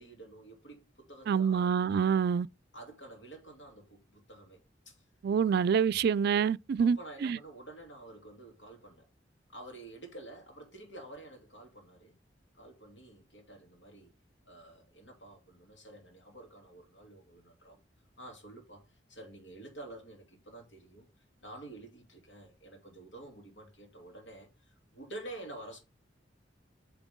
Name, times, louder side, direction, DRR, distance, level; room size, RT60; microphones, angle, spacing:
voice 1, 0.0-1.8 2.7-5.0 5.5-5.9 6.8-9.1 9.5-12.2 12.5-14.1 14.4-17.8 18.2-18.8 19.1-21.1 21.4-25.8, right 2 dB, 70° left, 2.8 m, -49 dB
voice 2, 1.3-2.5 5.2-7.4, right 7 dB, 60° right, 0.3 m, -27 dB
9.0 x 4.6 x 3.6 m
head